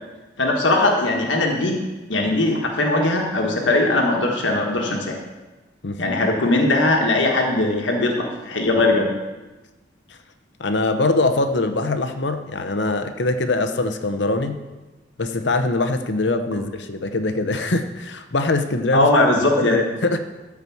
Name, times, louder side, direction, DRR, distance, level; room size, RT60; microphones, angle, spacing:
voice 1, 0.4-1.8 2.1-5.2 6.0-9.1 18.9-19.8, left 2 dB, 85° left, 1 dB, 1.5 m, -19 dB
voice 2, 5.8-6.2 10.6-14.6 15.2-19.1 19.7-20.2, left 2 dB, 70° left, 8 dB, 0.9 m, -23 dB
14.0 x 4.8 x 7.1 m, 1.1 s
head